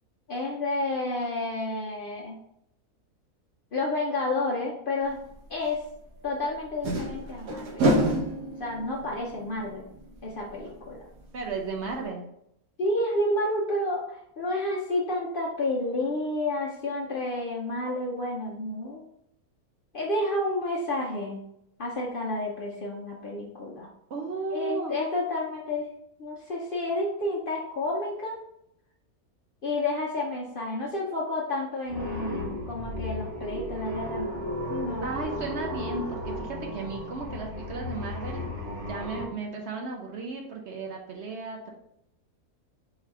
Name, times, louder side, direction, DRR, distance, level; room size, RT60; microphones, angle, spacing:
voice 1, 0.3-2.4 3.7-5.2 5.5-5.8 6.2-7.8 8.6-9.8 10.2-11.0 12.8-19.1 19.9-21.4 21.8-23.9 24.5-25.9 26.2-28.4 29.6-35.2, left 2 dB, 55° left, -3 dB, 0.6 m, -30 dB
sound 1, 5.3-5.4 6.7-11.2 11.5-11.6 11.9-12.0, right 1 dB, 80° right, 1.3 m, -29 dB
voice 2, 11.3-12.2 24.1-24.9 35.0-38.5 38.9-41.7, right 4 dB, 60° right, 1 dB, 0.8 m, -34 dB
sound 2, 31.9-39.3, left 1 dB, 25° right, 1.1 m, -34 dB
4.0 x 2.7 x 4.5 m, 0.78 s
omnidirectional pair, 1.5 m